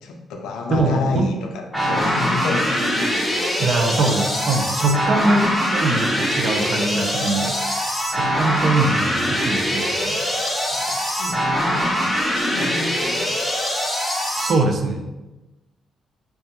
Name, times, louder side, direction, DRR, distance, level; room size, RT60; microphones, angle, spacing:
voice 1, 0.0-3.5 10.7-13.3, left 3 dB, 85° left, 3 dB, 0.3 m, -29 dB
voice 2, 0.7-1.3 3.6-7.6 8.1-10.2 14.4-15.2, right 2 dB, 55° right, 4 dB, 0.3 m, -22 dB
sound 1, 1.7-14.5, equal, 5° left, 0.5 m, -23 dB
2.2 x 2.1 x 2.8 m, 1.1 s
cardioid pair, 90°, 0 cm